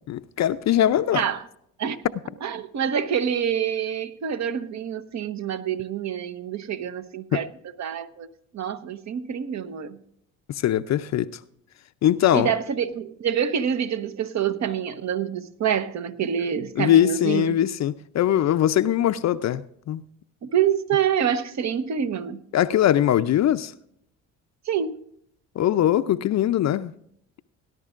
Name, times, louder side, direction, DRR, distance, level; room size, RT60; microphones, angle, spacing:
voice 1, 0.1-1.2 7.3-7.4 10.5-11.3 12.0-12.5 16.8-20.0 22.5-23.7 25.6-26.9, left 11 dB, 50° left, 0.5 m, -21 dB
voice 2, 1.1-1.4 1.8-2.0 2.4-7.5 7.8-8.3 8.5-10.0 12.3-17.6 20.4-22.4 24.7-25.0, right 8 dB, 50° right, 0.9 m, -26 dB
18.0 x 11.0 x 2.5 m
supercardioid pair, 65°, 36 cm